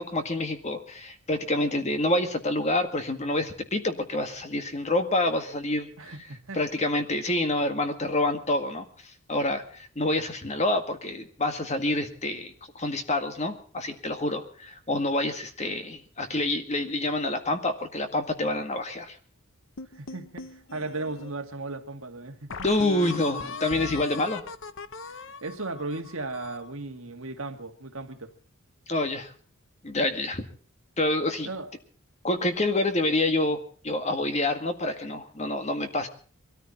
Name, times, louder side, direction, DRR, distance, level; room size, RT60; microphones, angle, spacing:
voice 1, 0.0-6.1 6.5-8.9 9.3-19.2 22.6-24.4 28.9-29.3 29.8-30.4 31.0-31.5 32.2-33.6 33.8-36.1, left 2 dB, 30° left, 1.8 m, -27 dB
voice 2, 6.0-6.6 19.9-22.5 25.1-28.3 31.4-31.7, right 2 dB, 70° right, 2.0 m, -36 dB
sound 1, 19.8-21.3 21.9-22.0 22.5-26.7, left 4 dB, 60° left, 0.8 m, -39 dB
22.5 x 14.0 x 4.2 m
head